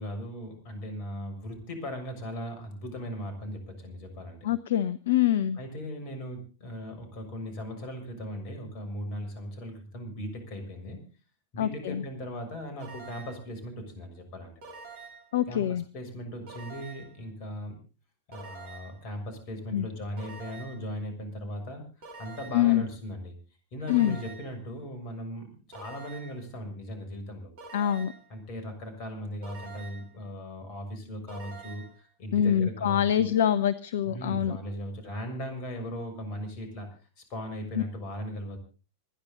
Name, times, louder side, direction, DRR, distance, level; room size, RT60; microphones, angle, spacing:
voice 1, 0.0-4.5 5.6-11.0 11.5-14.5 15.5-17.8 18.3-21.8 22.2-23.3 23.7-27.5 28.3-33.3 34.0-36.9 37.2-38.6, equal, 40° left, 7 dB, 6.6 m, -38 dB
voice 2, 4.4-5.6 11.6-12.0 15.3-15.8 19.7-19.9 22.5-22.8 23.9-24.2 27.7-28.1 32.3-34.6 37.8-37.9, left 10 dB, 60° left, 17 dB, 0.8 m, -25 dB
sound 1, 12.8-13.5 14.6-15.4 16.5-17.2 18.3-19.1 20.2-20.9 22.0-22.8 23.9-24.6 25.7-26.5 27.6-28.3 29.4-30.2 31.3-32.0, right 4 dB, 50° right, 4.1 m, -46 dB
26.5 x 10.5 x 3.9 m, 0.34 s
figure-of-eight pair, 90°, 0 cm